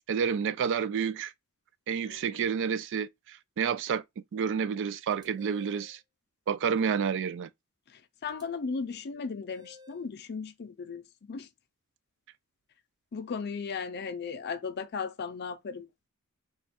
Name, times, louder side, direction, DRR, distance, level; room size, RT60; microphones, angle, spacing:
voice 1, 0.1-1.3 1.9-6.0 6.5-7.5, right 7 dB, 55° right, 0.3 m, -30 dB
voice 2, 2.0-2.5 7.9-11.5 13.1-15.9, left 5 dB, 50° left, 0.5 m, -36 dB
sound 1, 5.1-6.0 8.3-8.4 9.5-10.1, left 3 dB, 20° right, 0.6 m, -54 dB
3.2 x 2.3 x 4.2 m
head